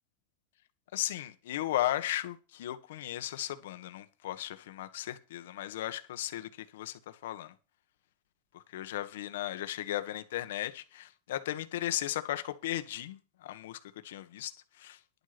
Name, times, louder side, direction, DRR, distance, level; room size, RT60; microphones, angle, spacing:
voice 1, 0.9-7.5 8.7-14.5 14.8-15.0, left 13 dB, 75° left, 1.5 m, -36 dB
11.0 x 8.3 x 6.0 m
supercardioid pair, 160°, 0 cm